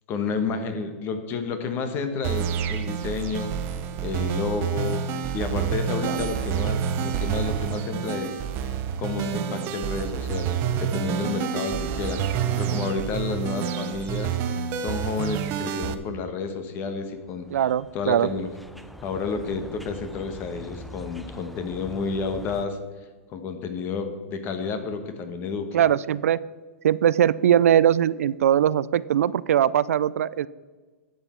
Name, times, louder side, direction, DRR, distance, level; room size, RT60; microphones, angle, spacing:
voice 1, 0.1-3.5 4.0-14.4 14.8-17.7 17.9-18.5 19.0-22.8 23.3-25.8, left 5 dB, 30° left, 8 dB, 1.2 m, -31 dB
sound 1, 2.2-15.9, right 8 dB, 30° right, 0.7 m, -28 dB
sound 2, 17.1-22.7, left 1 dB, ahead, 0.4 m, -43 dB
voice 2, 17.5-18.3 25.7-26.4 26.8-30.5, right 10 dB, 80° right, 19 dB, 0.3 m, -21 dB
12.0 x 8.2 x 4.4 m, 1.4 s
hypercardioid pair, 145°, 8 cm